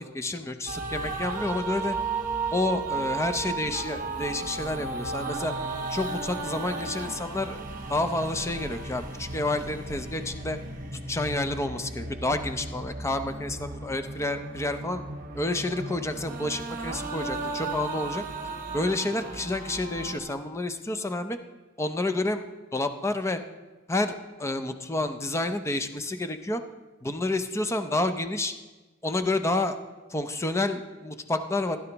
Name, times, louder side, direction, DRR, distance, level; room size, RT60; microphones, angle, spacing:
voice 1, 0.0-2.0 2.5-5.5 5.9-7.6 7.9-10.6 11.1-15.0 15.3-18.2 18.7-21.4 21.8-22.4 22.7-23.4 23.9-26.6 27.0-28.5 29.0-29.8 30.1-31.8, left 2 dB, 15° left, 8 dB, 0.5 m, -29 dB
sound 1, 0.7-20.2, right 3 dB, 40° right, 1.1 m, -35 dB
15.5 x 10.5 x 3.0 m, 1.2 s
head